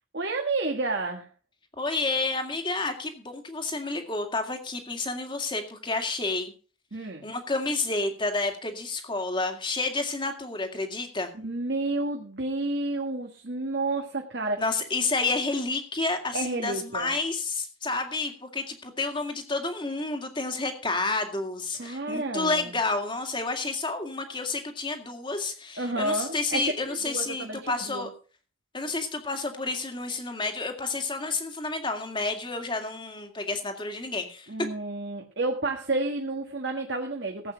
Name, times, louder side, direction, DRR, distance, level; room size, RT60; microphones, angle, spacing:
voice 1, 0.1-1.3 6.9-7.3 11.3-14.6 16.3-17.1 21.8-22.8 25.8-26.6 27.0-28.1 34.5-37.5, right 2 dB, 60° right, 2 dB, 1.6 m, -30 dB
voice 2, 1.8-6.5 7.2-11.3 14.6-28.1 28.7-34.5, left 3 dB, 25° left, 5 dB, 2.1 m, -30 dB
16.5 x 8.3 x 5.0 m, 0.38 s
head